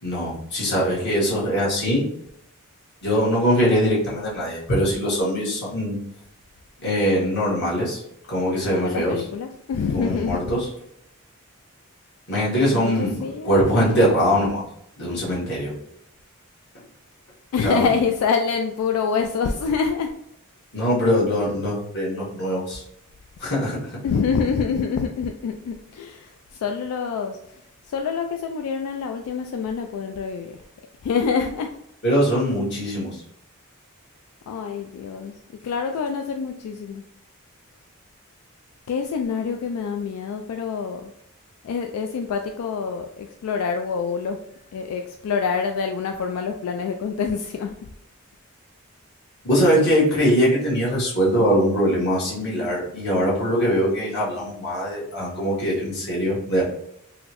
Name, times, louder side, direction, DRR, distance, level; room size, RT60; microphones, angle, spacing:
voice 1, 0.0-2.0 3.0-6.0 6.8-8.0 8.3-9.1 9.9-10.7 12.3-13.2 13.4-14.6 15.0-15.7 17.6-17.9 20.7-22.8 23.4-23.9 32.0-33.1 49.4-56.6, equal, 50° left, -6 dB, 1.3 m, -22 dB
voice 2, 8.7-10.6 12.7-14.2 17.5-20.1 24.0-27.4 27.9-30.6 31.0-31.7 34.5-35.3 35.6-37.0 38.9-41.1 41.6-44.4 44.7-47.9, left 5 dB, 85° left, 6 dB, 0.3 m, -26 dB
4.0 x 2.0 x 2.9 m, 0.76 s
head